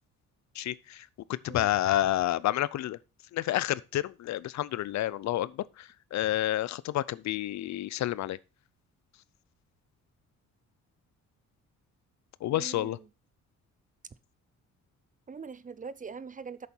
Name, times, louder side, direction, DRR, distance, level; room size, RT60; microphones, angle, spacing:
voice 1, 0.5-3.0 3.3-8.4 12.4-13.0, left 14 dB, 65° left, 0.5 m, -30 dB
voice 2, 12.5-13.1 15.3-16.7, right 5 dB, 25° right, 0.6 m, -42 dB
8.4 x 6.9 x 4.4 m
cardioid pair, 90°, 30 cm